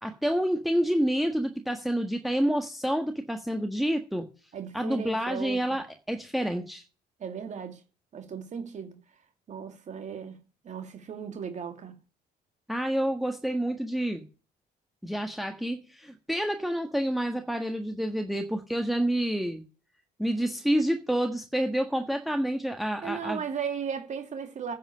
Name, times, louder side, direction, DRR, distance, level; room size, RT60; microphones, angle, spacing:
voice 1, 0.0-4.3 4.7-6.8 12.7-14.2 15.0-19.6 20.2-23.4, equal, ahead, 1.5 m, -28 dB
voice 2, 4.5-5.8 7.2-7.8 8.1-9.0 9.5-10.4 10.6-12.0 23.0-24.7, right 7 dB, 45° right, 2.3 m, -36 dB
10.0 x 7.7 x 9.7 m
cardioid pair, 110°, 17 cm